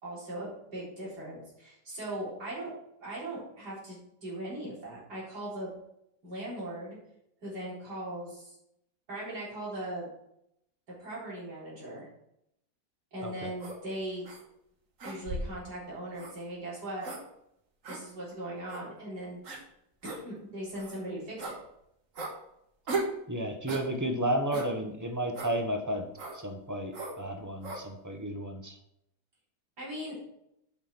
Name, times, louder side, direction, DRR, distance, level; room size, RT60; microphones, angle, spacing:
voice 1, 0.0-2.7 3.0-5.7 6.2-7.0 7.4-8.5 9.1-10.1 11.0-12.1 13.1-14.2 15.0-17.1 17.9-19.4 20.0-21.5 29.8-30.1, right 1 dB, 85° right, -7 dB, 4.6 m, -39 dB
voice 2, 13.2-13.5 23.3-26.1 26.3-28.8, right 1 dB, 15° right, 5 dB, 0.8 m, -32 dB
sound 1, 13.6-13.8 14.2-14.4 15.0-15.6 16.2-16.3 17.0-17.2 17.8-18.0 18.7-18.8 19.4-19.6 20.0-20.2 20.7-21.0 21.4-21.6 22.2-22.3 22.9-23.2 23.7-23.9 24.5-24.7 25.3-25.5 26.2-26.4 26.9-27.2 27.6-27.8, right 3 dB, 55° right, 1.7 m, -36 dB
8.1 x 5.9 x 5.9 m, 0.78 s
omnidirectional pair, 1.7 m